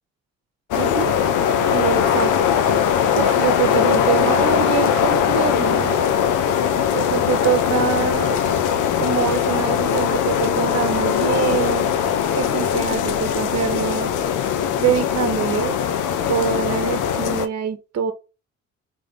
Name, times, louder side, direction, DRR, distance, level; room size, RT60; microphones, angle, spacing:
sound 1, 0.7-17.5, left 8 dB, 85° left, 0.7 m, -20 dB
voice 1, 0.8-1.2 1.7-2.3 3.2-6.0 6.9-8.7 9.0-11.9 12.4-14.1 14.8-15.8 16.3-18.1, right 8 dB, 55° right, 1.0 m, -24 dB
3.8 x 3.4 x 3.7 m
cardioid pair, 90°, 30 cm